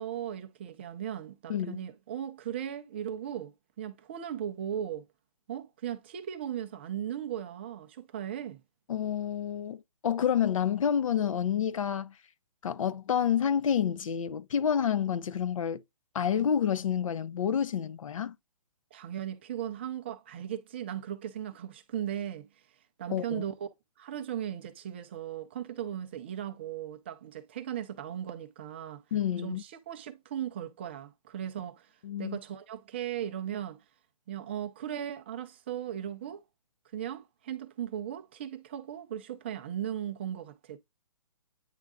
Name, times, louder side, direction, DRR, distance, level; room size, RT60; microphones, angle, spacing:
voice 1, 0.0-5.1 5.5-8.6 18.9-22.5 23.0-29.0 29.4-33.8 34.3-36.4 36.9-40.8, right 10 dB, 20° right, 0.4 m, -37 dB
voice 2, 8.9-12.1 12.6-15.8 16.1-18.3 23.1-23.4 29.1-29.6 32.0-32.4, left 8 dB, 60° left, 0.7 m, -29 dB
9.1 x 3.5 x 3.5 m
hypercardioid pair, 170°, 19 cm